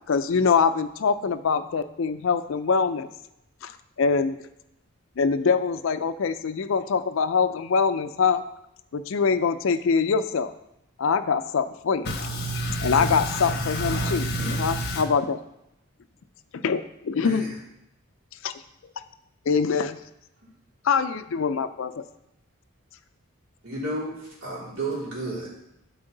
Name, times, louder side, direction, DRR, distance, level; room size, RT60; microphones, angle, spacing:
voice 1, 0.1-3.1 3.6-3.7 4.0-4.4 5.2-8.4 8.9-10.5 11.0-12.1 12.8-14.3 14.6-15.4 16.5-17.5 18.4-18.5 19.5-20.0 20.8-22.0, left 5 dB, 65° left, 0.4 m, -24 dB
voice 2, 12.0-15.0, right 1 dB, 50° left, 1.3 m, -28 dB
voice 3, 17.2-17.5 23.6-25.5, right 2 dB, 65° right, 3.2 m, -32 dB
12.0 x 4.4 x 3.9 m
head